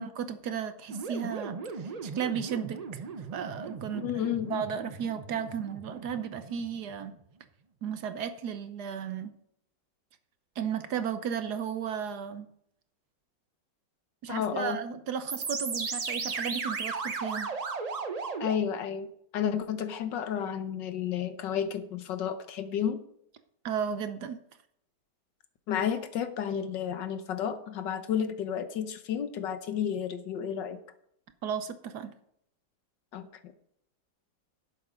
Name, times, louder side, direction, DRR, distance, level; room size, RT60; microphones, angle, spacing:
voice 1, 0.0-4.1 4.5-7.2 7.8-9.4 10.6-12.5 14.2-17.5 23.6-24.4 31.4-32.1, right 7 dB, 70° right, 10 dB, 1.4 m, -34 dB
sound 1, 0.9-7.0 15.3-18.5, right 4 dB, 45° right, 0.5 m, -36 dB
voice 2, 4.0-4.6 14.3-14.8 18.4-19.1 19.3-23.0 25.7-30.8 33.1-33.3, left 8 dB, 80° left, 9 dB, 1.6 m, -31 dB
11.0 x 8.0 x 5.1 m, 0.72 s
omnidirectional pair, 1.9 m